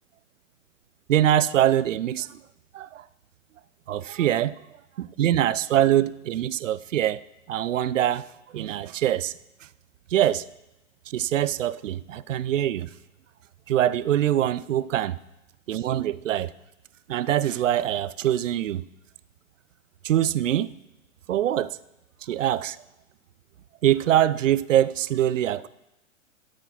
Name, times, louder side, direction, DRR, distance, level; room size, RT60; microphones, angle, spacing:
voice 1, 1.1-2.4 2.7-3.0 3.9-4.6 5.0-7.2 7.5-8.3 8.5-9.3 10.1-10.4 11.1-12.9 13.7-15.2 15.7-16.5 17.1-18.8 20.0-20.7 21.3-21.8 22.2-22.8 23.8-25.7, right 12 dB, 70° right, 0.5 m, -23 dB
12.5 x 4.8 x 5.7 m
figure-of-eight pair, 110°, 39 cm